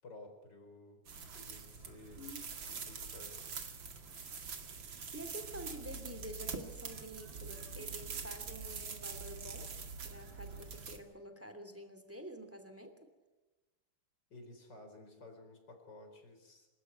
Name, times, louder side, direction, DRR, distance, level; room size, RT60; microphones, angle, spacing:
voice 1, 0.0-1.0 1.3-2.3 2.7-3.4 14.3-16.7, left 2 dB, 50° left, 5 dB, 4.9 m, -54 dB
sound 1, 1.1-11.0, right 5 dB, 60° right, 2.8 m, -45 dB
voice 2, 5.1-9.7 10.0-12.9, equal, 5° right, 8 dB, 2.7 m, -48 dB
26.0 x 15.0 x 9.4 m, 1.2 s
omnidirectional pair, 2.4 m